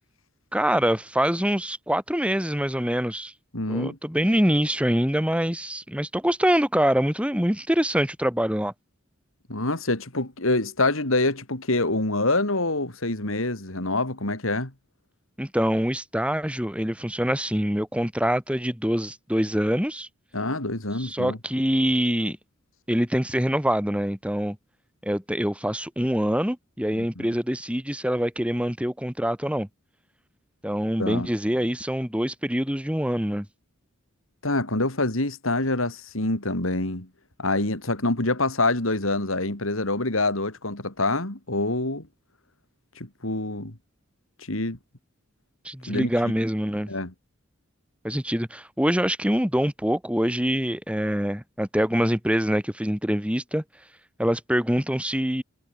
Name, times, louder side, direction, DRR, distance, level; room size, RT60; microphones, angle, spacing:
voice 1, 0.5-3.3 3.7-8.7 15.4-20.1 21.0-22.4 22.9-24.6 25.0-29.7 30.6-33.5 45.6-46.9 48.0-53.6 54.2-55.4, equal, 5° right, 4.4 m, -25 dB
voice 2, 3.5-4.0 9.5-14.7 20.3-21.4 26.9-27.3 31.0-31.3 34.4-37.1 37.4-42.1 43.0-43.8 44.4-44.8 45.9-46.3 46.9-47.1, left 2 dB, 75° left, 3.7 m, -26 dB
head